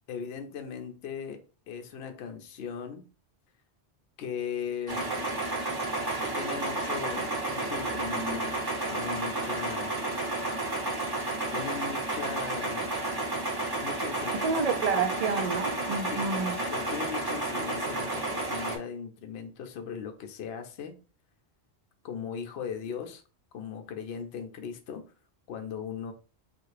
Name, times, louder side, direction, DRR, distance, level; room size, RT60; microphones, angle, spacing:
voice 1, 0.1-3.0 4.2-5.1 6.0-8.5 8.9-10.0 11.5-12.9 13.8-14.8 16.1-16.2 16.7-20.9 22.0-23.2 23.5-25.0 25.5-26.1, left 6 dB, 70° left, 0.8 m, -38 dB
sound 1, 4.9-18.8, right 2 dB, 25° right, 0.8 m, -31 dB
voice 2, 14.4-16.6, right 5 dB, 60° right, 0.4 m, -29 dB
3.3 x 2.4 x 3.2 m
omnidirectional pair, 1.1 m